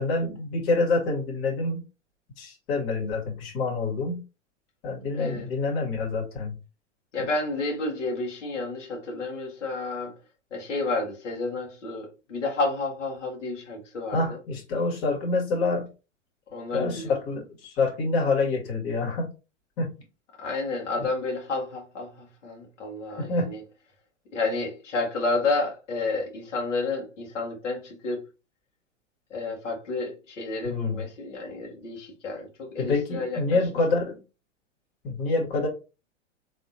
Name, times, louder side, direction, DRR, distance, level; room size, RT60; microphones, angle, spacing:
voice 1, 0.0-1.8 2.4-4.2 4.8-6.6 14.1-15.9 16.7-19.3 19.8-19.9 23.2-23.5 30.6-31.0 32.8-34.1 35.0-35.7, left 3 dB, 50° left, 2.2 m, -27 dB
voice 2, 5.1-5.5 7.1-10.1 10.5-14.4 16.5-17.1 20.4-23.6 24.3-28.2 29.3-33.6, left 3 dB, 70° left, 1.9 m, -30 dB
4.2 x 3.4 x 2.7 m
figure-of-eight pair, 95°, 37 cm